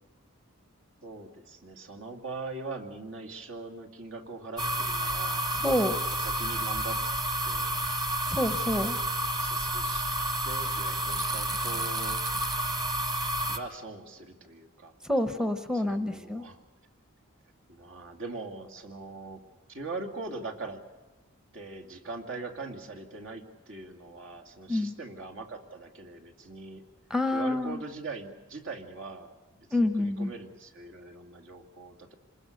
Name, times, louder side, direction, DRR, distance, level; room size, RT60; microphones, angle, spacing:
voice 1, 1.0-5.5 6.2-7.0 7.4-7.8 9.3-10.1 10.4-12.2 13.5-14.9 15.3-16.6 17.7-19.4 19.7-20.8 21.5-26.8 27.3-32.1, right 3 dB, 65° right, 2 dB, 2.4 m, -41 dB
sound 1, 4.6-13.6, right 1 dB, 20° right, 1.4 m, -30 dB
voice 2, 5.5-6.0 8.3-9.0 15.0-16.5 24.7-24.9 27.1-27.8 29.7-30.3, left 1 dB, 5° right, 9 dB, 0.8 m, -28 dB
27.0 x 20.5 x 6.6 m, 1.2 s
head